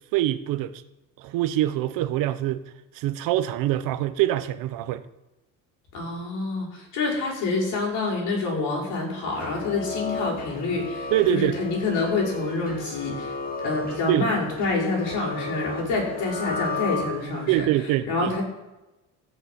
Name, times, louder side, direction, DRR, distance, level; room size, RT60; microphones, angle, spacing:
voice 1, 0.1-0.8 1.2-2.6 2.9-5.0 11.1-11.6 14.1-14.3 17.5-18.3, right 14 dB, 75° right, 1.0 m, -24 dB
voice 2, 5.9-17.7 18.0-18.4, left 3 dB, 60° left, 5.8 m, -27 dB
sound 1, 9.3-17.5, left 3 dB, 25° left, 1.9 m, -34 dB
16.0 x 6.5 x 8.5 m
cardioid pair, 140°, 34 cm